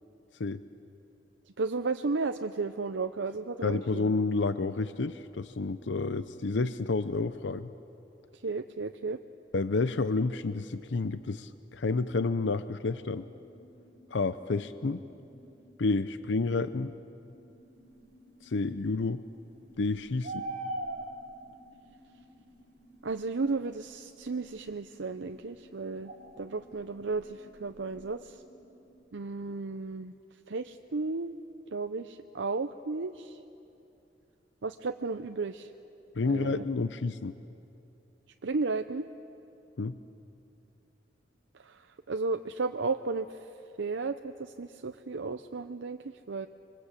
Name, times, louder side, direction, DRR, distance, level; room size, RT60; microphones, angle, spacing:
voice 1, 1.6-4.1 8.4-9.2 23.0-26.1 26.4-28.4 29.1-30.1 30.5-31.4 31.7-33.4 34.6-35.7 36.2-36.7 38.4-39.1 41.6-41.8 42.1-43.3 43.8-46.0 46.3-46.5, right 3 dB, 90° right, 8 dB, 0.7 m, -33 dB
voice 2, 3.6-7.7 9.5-13.2 14.1-15.0 15.8-16.9 18.4-19.2 19.8-20.4 36.2-37.3 39.8-40.0, left 3 dB, 80° left, 13 dB, 0.6 m, -30 dB
sound 1, 13.2-28.9, equal, 25° left, 5.3 m, -59 dB
sound 2, 19.8-21.4 23.8-23.9 26.0-26.4 26.8-26.9 27.1-28.1, right 2 dB, 45° right, 3.7 m, -37 dB
26.5 x 24.0 x 8.3 m, 2.8 s
head